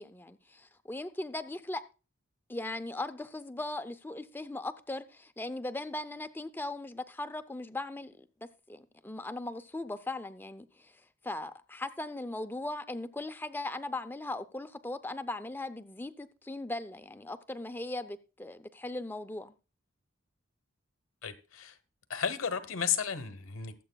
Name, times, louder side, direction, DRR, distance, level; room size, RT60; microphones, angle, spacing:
voice 1, 0.0-1.8 2.5-8.3 8.7-19.5, left 2 dB, 10° left, 0.5 m, -39 dB
voice 2, 21.2-21.8 22.1-23.7, left 7 dB, 90° left, 1.0 m, -33 dB
22.0 x 7.7 x 2.3 m
head